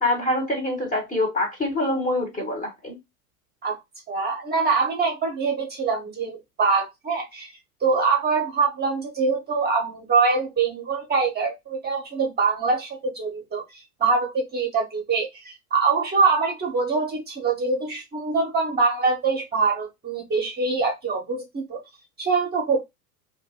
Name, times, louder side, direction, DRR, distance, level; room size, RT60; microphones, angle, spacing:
voice 1, 0.0-3.0, left 1 dB, 15° left, 0.9 m, -25 dB
voice 2, 4.1-7.5 7.8-21.8 22.2-22.8, right 4 dB, 20° right, 0.8 m, -24 dB
2.4 x 2.3 x 2.9 m
hypercardioid pair, 90°, 46 cm